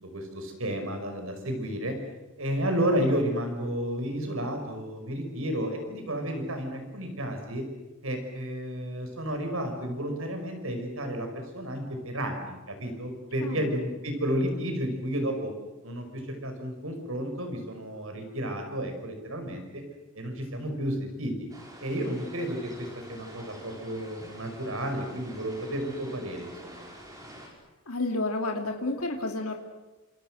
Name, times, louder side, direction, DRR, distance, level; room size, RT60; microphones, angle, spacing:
voice 1, 0.0-2.0 2.4-7.6 8.0-15.5 15.8-19.8 20.1-21.3 21.8-26.8, equal, 70° right, 5 dB, 6.0 m, -32 dB
voice 2, 13.4-13.8 27.9-29.6, left 2 dB, 80° left, 3 dB, 2.8 m, -30 dB
sound 1, 21.5-27.5, right 1 dB, 15° right, 5.2 m, -47 dB
28.0 x 27.5 x 6.5 m, 1.1 s
head